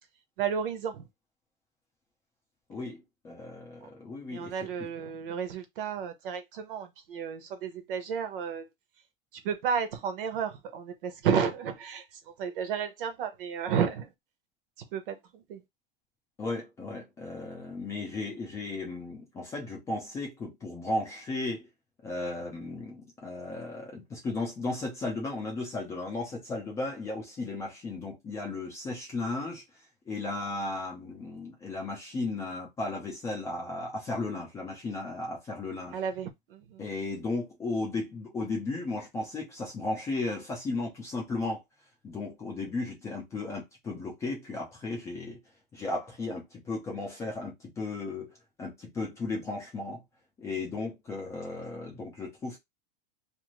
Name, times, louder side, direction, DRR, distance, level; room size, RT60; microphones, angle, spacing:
voice 1, 0.4-1.0 3.8-3.9 4.3-8.6 9.4-12.0 12.4-14.1 14.9-15.6 35.9-36.8, right 7 dB, 65° right, 0.9 m, -32 dB
voice 2, 2.7-4.5 4.8-4.9 16.4-21.7 22.0-29.6 30.1-36.0 36.8-41.6 42.0-45.4 45.7-50.0 50.4-52.6, left 2 dB, 10° left, 0.5 m, -35 dB
2.6 x 2.6 x 3.0 m
supercardioid pair, 175°, 29 cm